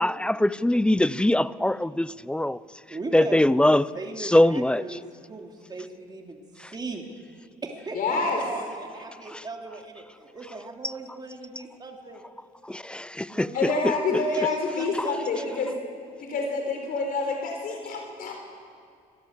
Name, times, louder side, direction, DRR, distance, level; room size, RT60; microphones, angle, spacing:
voice 1, 0.0-2.6 3.1-3.9 4.3-4.8 12.6-13.5 15.0-15.1, left 1 dB, 5° left, 0.5 m, -22 dB
voice 2, 2.9-3.4 3.9-6.4 6.7-7.0 7.6-12.2 13.2-15.7 16.3-16.4, right 3 dB, 25° right, 3.0 m, -38 dB
voice 3, 7.9-8.4 13.5-15.7 16.2-18.4, left 3 dB, 60° left, 4.6 m, -27 dB
25.5 x 17.5 x 8.1 m
cardioid pair, 110°, 17 cm